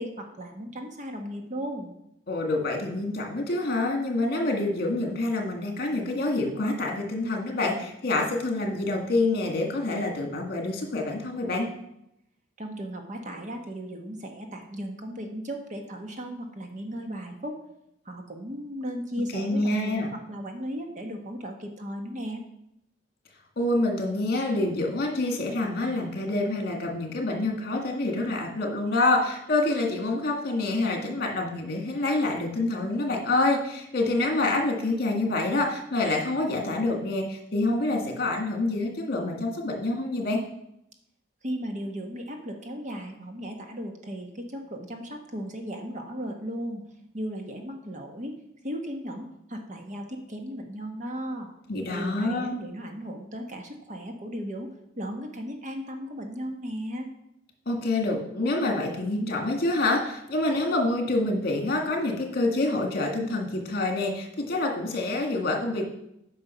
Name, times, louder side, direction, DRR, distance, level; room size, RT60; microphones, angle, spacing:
voice 1, 0.0-1.9 12.6-17.6 18.0-22.4 41.4-46.8 47.1-48.4 48.6-51.5 51.9-57.1, equal, 40° right, 4 dB, 1.3 m, -36 dB
voice 2, 2.3-11.7 19.3-20.1 23.6-40.4 51.7-52.6 57.7-65.8, left 2 dB, 55° left, 2 dB, 1.8 m, -27 dB
9.1 x 5.7 x 5.6 m, 0.79 s
head